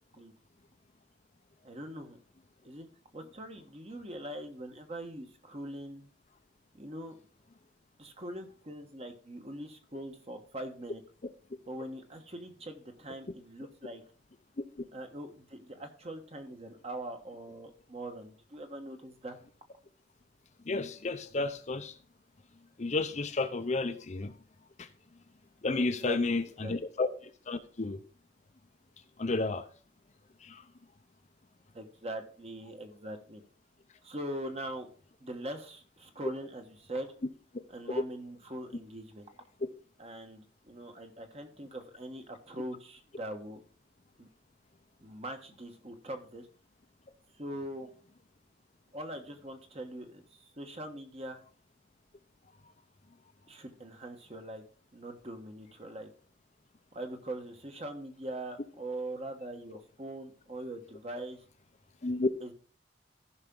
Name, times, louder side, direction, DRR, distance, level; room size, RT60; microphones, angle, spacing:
voice 1, 1.6-2.2 2.6-2.9 3.1-6.1 6.7-7.1 8.0-11.0 11.7-14.0 14.9-19.4 25.8-26.7 31.7-33.4 34.0-34.9 35.2-37.1 37.7-39.3 40.0-43.6 44.2-44.3 45.0-46.5 47.4-47.9 48.9-51.4 53.5-54.6 54.9-56.1 56.9-61.4 62.4-62.5, right 1 dB, 35° right, 1.3 m, -42 dB
voice 2, 20.6-22.0 22.8-24.3 24.8-24.9 25.6-28.0 29.2-29.7 30.4-30.7 62.0-62.3, left 3 dB, 40° left, 0.6 m, -32 dB
14.0 x 5.8 x 3.7 m
head